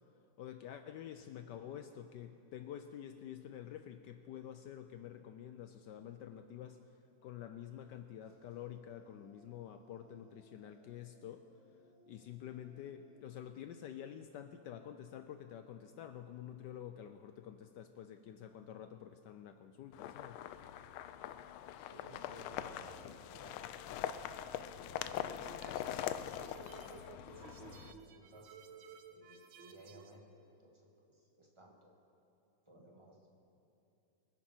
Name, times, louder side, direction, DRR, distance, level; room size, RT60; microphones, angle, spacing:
voice 1, 0.4-11.5 12.1-20.4, left 10 dB, 75° left, 8 dB, 1.0 m, -49 dB
sound 1, 8.2-13.2, left 1 dB, 55° right, 2.3 m, -67 dB
sound 2, 19.9-27.9, left 11 dB, 90° left, 1.5 m, -43 dB
voice 2, 21.7-24.4 24.8-25.6 26.8-28.6 29.1-31.9 32.6-33.3, equal, 15° right, -1 dB, 1.8 m, -58 dB
sound 3, 25.3-30.2, right 7 dB, 75° right, 1.5 m, -56 dB
24.0 x 10.5 x 4.5 m, 2.7 s
omnidirectional pair, 2.3 m